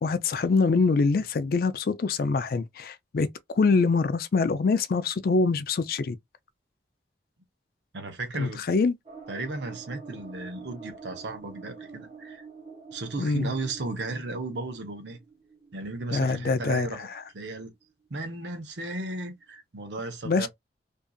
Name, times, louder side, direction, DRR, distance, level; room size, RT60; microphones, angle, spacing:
voice 1, 0.0-6.2 8.4-9.0 13.2-13.5 16.1-17.1 20.2-20.5, left 4 dB, 55° left, 0.4 m, -24 dB
voice 2, 7.9-8.6 9.3-12.4 12.9-15.2 15.7-17.1 17.3-17.7 18.1-20.5, right 2 dB, 75° right, 0.8 m, -35 dB
sound 1, 9.1-17.5 17.9-18.0 18.2-18.3, right 5 dB, 35° right, 0.9 m, -47 dB
2.6 x 2.5 x 2.3 m
head